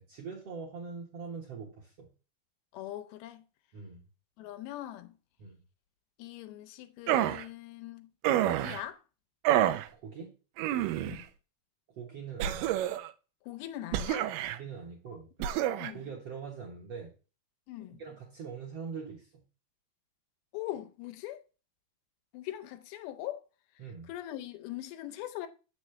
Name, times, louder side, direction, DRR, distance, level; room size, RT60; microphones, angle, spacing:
voice 1, 0.1-2.1 3.7-4.0 5.4-5.6 9.9-10.3 11.9-12.7 14.5-15.3 15.9-17.1 18.0-19.4 23.8-24.1, right 5 dB, 60° right, 1.7 m, -43 dB
voice 2, 2.7-3.4 4.4-5.1 6.2-8.1 8.4-9.0 11.0-11.3 13.5-14.3 15.4-15.5 15.8-16.1 17.7-18.0 20.5-21.4 22.3-23.4 24.1-25.5, left 14 dB, 85° left, 2.6 m, -41 dB
sound 1, 7.1-7.4 8.2-8.8 9.5-9.9 10.6-11.2 12.4-13.1 13.9-14.6 15.4-15.9, right 12 dB, 80° right, 2.0 m, -28 dB
7.4 x 6.2 x 3.1 m
omnidirectional pair, 4.4 m